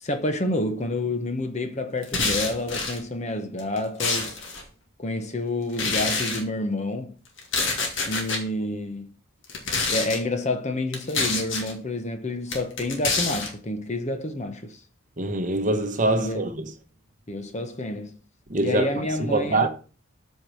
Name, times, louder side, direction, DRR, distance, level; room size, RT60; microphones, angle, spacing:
voice 1, 0.0-4.4 5.0-7.2 8.0-9.1 9.9-14.8 16.2-16.5 17.3-18.2 18.6-19.7, left 1 dB, 30° left, 1.0 m, -29 dB
sound 1, 2.0-3.0 3.6-4.6 5.7-6.4 7.4-8.4 9.4-10.2 10.9-11.7 12.5-13.5, left 4 dB, 60° left, 2.2 m, -27 dB
voice 2, 15.2-16.7 18.5-19.7, right 2 dB, 35° right, 0.9 m, -24 dB
8.3 x 4.6 x 6.2 m
head